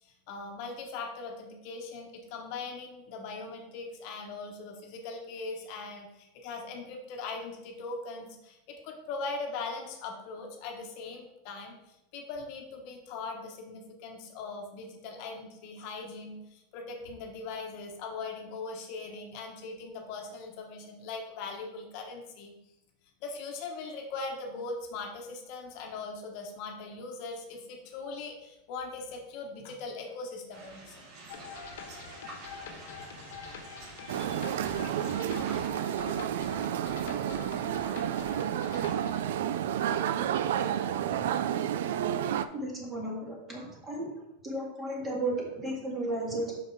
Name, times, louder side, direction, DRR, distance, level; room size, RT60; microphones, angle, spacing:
voice 1, 0.0-22.5 23.2-31.1, left 3 dB, 50° left, 2 dB, 1.1 m, -40 dB
sound 1, 30.5-35.7, right 2 dB, 50° right, 1.7 m, -48 dB
sound 2, 31.3-39.3, left 5 dB, 85° left, 1.2 m, -45 dB
sound 3, 34.1-42.5, right 10 dB, 75° right, 0.4 m, -30 dB
voice 2, 42.5-44.1 44.4-46.6, right 1 dB, 20° right, -2 dB, 2.1 m, -34 dB
5.9 x 5.6 x 4.7 m, 0.88 s
supercardioid pair, 145°, 0 cm